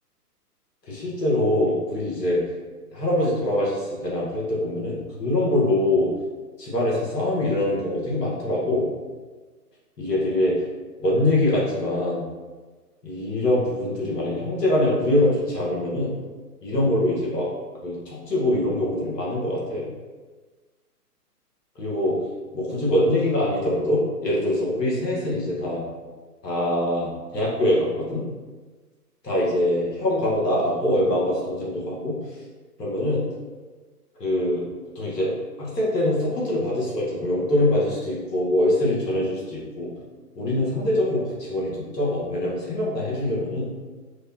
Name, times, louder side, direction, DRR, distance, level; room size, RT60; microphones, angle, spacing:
voice 1, 0.9-2.4 2.9-6.1 6.6-8.9 10.0-10.5 11.0-12.2 13.0-16.1 16.6-17.5 17.8-19.9 21.7-22.2 22.5-25.8 26.4-28.2 29.2-32.1 32.8-33.2 34.2-34.7 34.9-35.3 35.6-39.9 40.3-43.7, left 1 dB, 90° left, -5 dB, 1.5 m, -23 dB
4.8 x 2.3 x 2.8 m, 1.4 s
hypercardioid pair, 135°, 48 cm